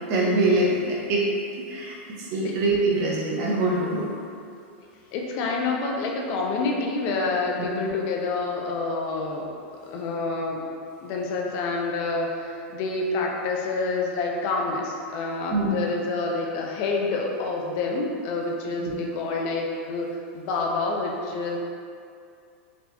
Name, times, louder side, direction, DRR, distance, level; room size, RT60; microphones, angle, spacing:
voice 1, 0.1-1.3 1.5-4.1 7.6-7.7 15.5-15.7 18.8-18.9, right 2 dB, 45° right, -4 dB, 0.8 m, -24 dB
voice 2, 4.8-9.5 9.8-10.6 11.0-20.1 20.3-21.6, left 3 dB, 50° left, 0 dB, 0.5 m, -28 dB
4.2 x 2.7 x 2.2 m, 2.4 s
hypercardioid pair, 120°, 7 cm